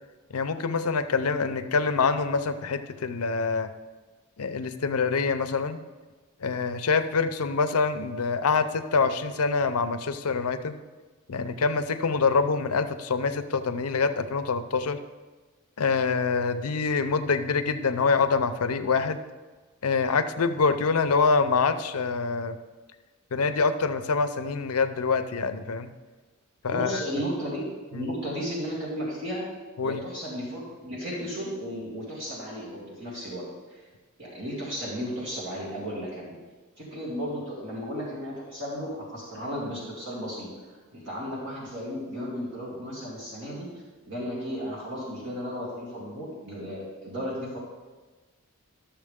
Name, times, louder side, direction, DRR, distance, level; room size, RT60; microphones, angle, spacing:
voice 1, 0.3-3.7 4.4-5.8 6.4-10.8 11.3-15.0 15.8-19.2 19.8-22.6 23.3-25.9 26.6-27.0 27.9-28.1 29.8-30.0, left 4 dB, 85° left, 10 dB, 0.6 m, -25 dB
voice 2, 26.7-27.6 27.9-29.4 29.8-33.8 34.2-36.3 36.8-43.7 44.1-47.6, equal, 55° right, -6 dB, 2.4 m, -34 dB
12.0 x 7.1 x 3.6 m, 1.3 s
head